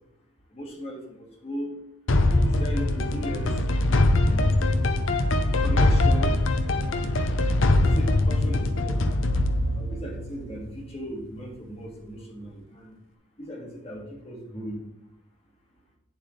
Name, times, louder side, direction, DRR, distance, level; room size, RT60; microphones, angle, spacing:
voice 1, 0.5-1.8 2.4-4.5 5.6-6.4 7.6-9.0 9.7-13.0 13.4-14.8, equal, 30° left, -2 dB, 2.0 m, -37 dB
sound 1, 2.1-10.9, left 2 dB, 85° left, 0.8 m, -22 dB
9.1 x 7.6 x 3.3 m, 0.83 s
head